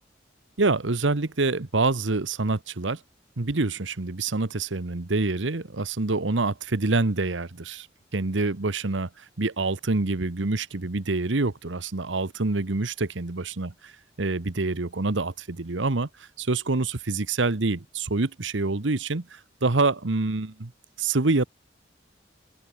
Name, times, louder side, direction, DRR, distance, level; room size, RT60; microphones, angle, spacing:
voice 1, 0.6-3.0 3.4-7.9 8.1-13.9 14.2-20.7 21.0-21.4, right 3 dB, 80° right, 1.2 m, -26 dB
open air
head